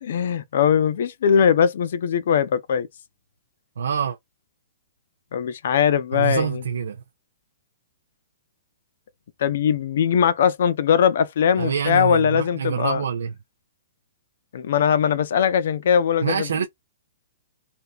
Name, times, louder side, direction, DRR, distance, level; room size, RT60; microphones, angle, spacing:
voice 1, 0.0-2.9 5.3-6.6 9.4-13.0 14.5-16.7, left 8 dB, 60° left, 0.5 m, -20 dB
voice 2, 3.8-4.2 6.1-7.0 11.6-13.3 16.2-16.7, right 7 dB, 85° right, 0.6 m, -26 dB
3.4 x 2.7 x 2.3 m
hypercardioid pair, 160°, 0 cm